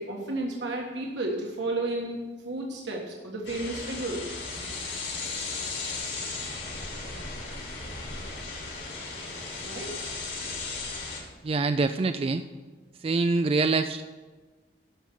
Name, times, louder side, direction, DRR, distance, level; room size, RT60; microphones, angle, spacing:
voice 1, 0.0-2.2 2.4-4.4 9.6-10.1, right 2 dB, 80° right, -1 dB, 1.5 m, -32 dB
sound 1, 3.4-11.2, left 3 dB, 85° left, 4.5 m, -36 dB
voice 2, 11.4-12.5 13.0-14.0, right 3 dB, 30° right, 9 dB, 0.3 m, -25 dB
12.0 x 5.7 x 8.1 m, 1.3 s
head